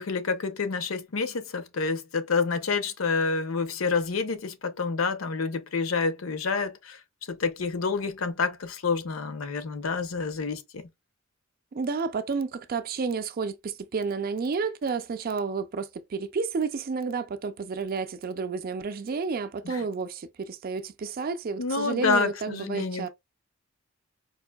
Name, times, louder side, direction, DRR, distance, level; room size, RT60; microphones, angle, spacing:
voice 1, 0.0-7.0 7.3-10.9 19.6-19.8 21.6-23.1, left 4 dB, 80° left, 0.7 m, -28 dB
voice 2, 11.7-23.1, right 5 dB, 45° right, 0.4 m, -31 dB
4.6 x 2.5 x 2.2 m
head